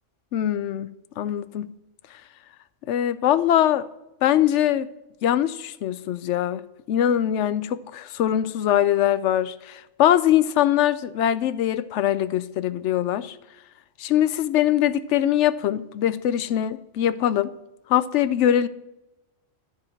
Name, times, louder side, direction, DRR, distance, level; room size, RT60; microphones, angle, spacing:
voice 1, 0.3-0.9 1.2-1.7 2.9-3.9 4.2-4.9 5.2-6.6 6.9-13.4 14.0-17.5 17.9-18.7, left 11 dB, 70° left, 0.9 m, -22 dB
13.5 x 4.8 x 5.8 m
omnidirectional pair, 1.3 m